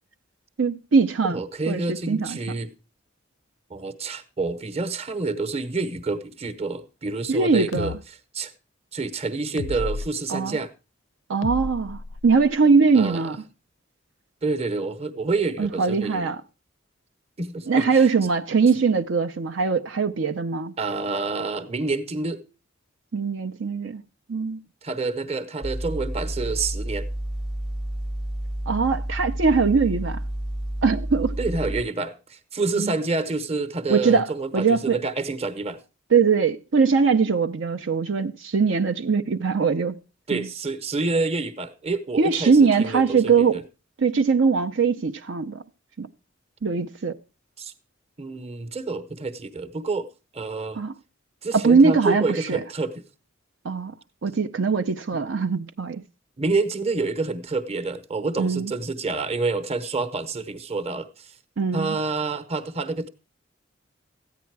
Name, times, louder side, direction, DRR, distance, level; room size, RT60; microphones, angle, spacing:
voice 1, 0.6-1.4 1.7-2.4 7.3-8.0 10.3-10.6 11.3-13.4 15.6-16.4 17.7-20.7 23.1-24.0 24.3-24.6 28.7-30.2 30.8-31.4 32.8-32.9 33.9-34.3 34.5-35.0 36.1-40.0 40.3-40.5 42.2-43.6 44.0-45.6 46.0-46.1 46.6-47.2 50.8-50.9 51.5-52.6 53.6-53.9 54.2-56.0 58.4-58.7 61.6-62.0, right 5 dB, 70° right, 0.6 m, -21 dB
voice 2, 1.2-2.7 3.7-7.9 8.3-8.5 8.9-10.7 12.9-13.2 14.4-16.3 17.4-18.1 20.8-22.4 24.8-27.1 31.4-35.8 40.3-43.6 47.6-47.7 48.2-50.1 50.3-50.8 51.4-53.0 56.4-61.3 61.7-63.1, right 3 dB, 30° right, 0.9 m, -28 dB
sound 1, 7.7-8.0 9.6-10.1 11.4-12.6, left 3 dB, 75° left, 0.5 m, -32 dB
sound 2, 25.6-31.8, right 1 dB, 5° right, 0.6 m, -30 dB
14.0 x 9.4 x 4.6 m
head